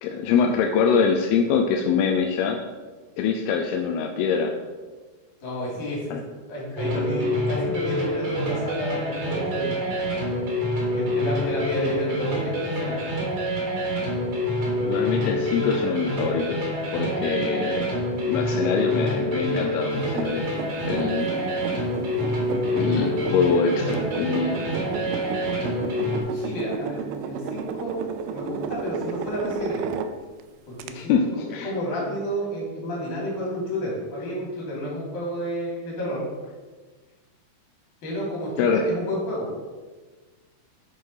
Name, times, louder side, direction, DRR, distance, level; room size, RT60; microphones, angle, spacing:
voice 1, 0.0-2.6 3.2-4.5 6.1-6.2 14.7-18.0 18.3-20.6 20.8-21.3 22.7-24.6 30.9-31.7 38.6-38.8, left 6 dB, 85° left, 3 dB, 2.6 m, -24 dB
voice 2, 5.4-6.1 6.5-9.8 10.9-13.0 26.3-28.0 28.3-29.9 30.7-31.1 31.6-36.2 38.0-39.7, equal, 55° left, -4 dB, 4.2 m, -30 dB
sound 1, 6.8-26.2, left 1 dB, 50° right, 3.1 m, -26 dB
sound 2, 19.9-30.4 30.8-30.9, right 6 dB, 90° right, 2.5 m, -34 dB
7.5 x 5.2 x 5.6 m, 1.3 s
omnidirectional pair, 4.4 m